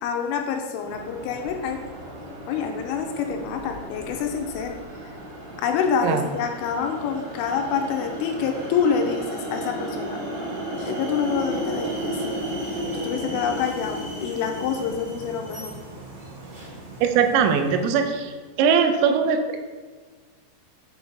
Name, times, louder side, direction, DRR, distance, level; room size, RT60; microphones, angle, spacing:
voice 1, 0.0-1.8 2.5-4.8 5.6-10.2 10.8-12.4 12.9-15.8, left 6 dB, 85° left, 4 dB, 3.1 m, -27 dB
sound 1, 0.8-18.2, right 1 dB, 45° right, 2.5 m, -34 dB
voice 2, 17.0-18.3 18.6-19.7, right 6 dB, 85° right, 7 dB, 3.4 m, -20 dB
7.2 x 5.4 x 4.6 m, 1.4 s
omnidirectional pair, 5.9 m